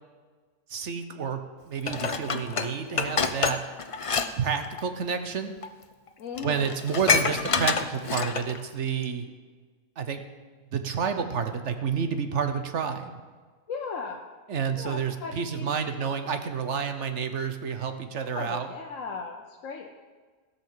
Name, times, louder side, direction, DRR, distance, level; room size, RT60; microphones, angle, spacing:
voice 1, 0.7-1.4 1.7-3.6 4.4-5.6 6.4-9.3 10.0-10.2 10.7-13.1 14.5-18.7, right 6 dB, 60° right, 8 dB, 1.1 m, -29 dB
Dishes pots and pans, 1.9-4.3 4.6-4.8 5.6-5.7 6.1-6.2 6.4-8.6 9.0-9.1, left 5 dB, 50° left, 0.4 m, -27 dB
voice 2, 6.2-6.8 13.7-14.3 14.8-15.7 18.3-20.0, left 5 dB, 70° left, 1 dB, 1.2 m, -37 dB
16.5 x 5.7 x 7.3 m, 1.5 s
omnidirectional pair, 1.5 m